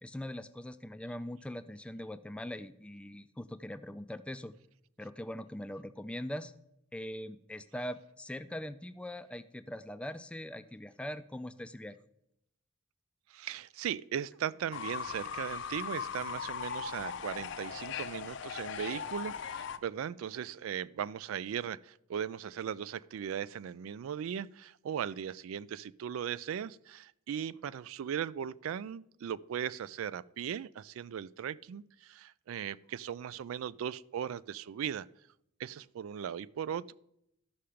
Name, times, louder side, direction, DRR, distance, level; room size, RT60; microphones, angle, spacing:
voice 1, 0.0-4.5 5.0-6.5 6.9-12.0, left 1 dB, 5° left, 11 dB, 0.3 m, -41 dB
voice 2, 13.3-35.1 35.6-36.9, right 8 dB, 85° right, 19 dB, 0.3 m, -38 dB
Fowl / Bird, 14.7-19.8, left 7 dB, 60° left, 0.5 m, -39 dB
13.0 x 5.7 x 5.0 m, 0.78 s
head